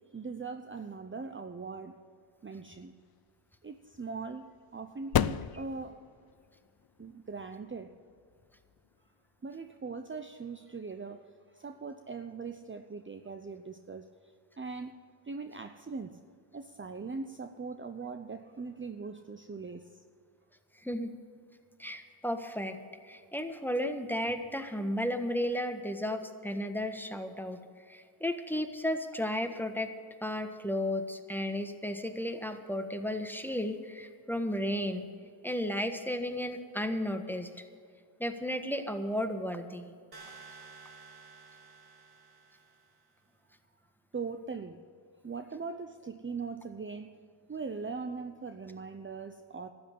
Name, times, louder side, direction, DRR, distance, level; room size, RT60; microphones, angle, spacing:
voice 1, 0.1-2.0 2.4-2.9 3.6-6.0 7.0-7.9 9.4-14.1 14.6-15.0 15.3-16.2 16.5-20.0 44.1-44.8 45.2-47.1 47.5-49.7, right 4 dB, 25° right, 7 dB, 0.8 m, -40 dB
sound 1, 2.5-9.8, left 10 dB, 50° left, 0.6 m, -38 dB
voice 2, 20.8-21.1 21.8-22.8 23.0-27.6 27.9-29.9 30.2-35.1 35.4-37.5 38.2-39.9, left 1 dB, 5° left, 7 dB, 1.5 m, -33 dB
sound 2, 40.1-43.0, right 5 dB, 50° right, 3.2 m, -52 dB
12.5 x 8.8 x 9.3 m, 2.2 s
cardioid pair, 45°, 48 cm